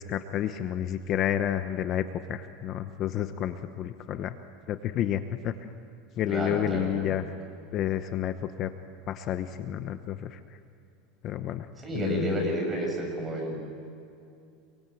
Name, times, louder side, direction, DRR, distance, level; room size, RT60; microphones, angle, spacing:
voice 1, 0.0-2.0 2.3-4.3 4.7-5.7 6.2-7.2 7.7-8.7 9.1-10.4 11.2-11.7 12.0-12.3, left 11 dB, 40° left, 9 dB, 1.0 m, -30 dB
voice 2, 6.3-7.2 11.8-13.6, right 1 dB, 15° right, 1 dB, 7.0 m, -31 dB
26.5 x 23.0 x 9.2 m, 2.6 s
supercardioid pair, 145°, 0 cm